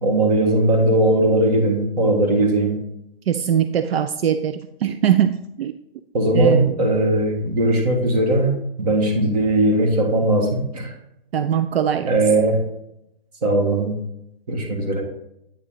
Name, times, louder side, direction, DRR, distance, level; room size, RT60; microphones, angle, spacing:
voice 1, 0.0-2.8 6.1-8.5 8.8-10.9 12.1-12.6 13.4-14.0 14.5-15.0, right 1 dB, 40° right, 2 dB, 1.7 m, -19 dB
voice 2, 3.3-5.7 6.3-6.8 11.3-12.1, right 9 dB, 75° right, 10 dB, 0.5 m, -21 dB
8.8 x 4.0 x 3.9 m, 0.81 s
hypercardioid pair, 160°, 30 cm